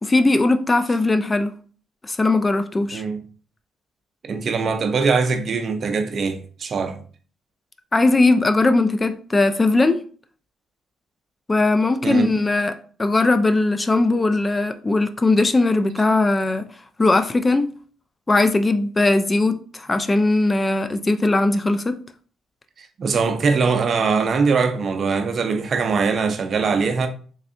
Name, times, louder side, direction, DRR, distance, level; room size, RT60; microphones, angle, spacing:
voice 1, 0.0-1.5 2.0-3.0 7.9-10.0 11.5-16.7 17.0-17.7 18.3-22.0, left 2 dB, 25° left, 0.3 m, -19 dB
voice 2, 4.2-7.0 12.0-12.3 22.8-27.1, right 5 dB, 50° right, 0.5 m, -22 dB
3.4 x 3.2 x 2.6 m
cardioid pair, 90°, 0 cm